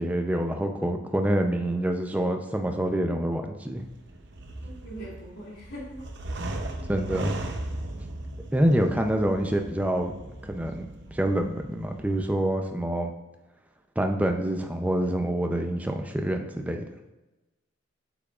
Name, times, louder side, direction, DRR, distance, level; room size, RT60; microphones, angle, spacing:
voice 1, 0.0-3.9 6.9-7.4 8.5-10.1 10.4-13.1 14.0-16.8, right 1 dB, 5° right, 4 dB, 0.5 m, -26 dB
sound 1, 3.8-12.3, right 1 dB, 60° right, 0.7 m, -37 dB
voice 2, 4.6-6.0, right 1 dB, 90° left, -5 dB, 2.6 m, -41 dB
8.5 x 7.0 x 2.4 m, 1.0 s
head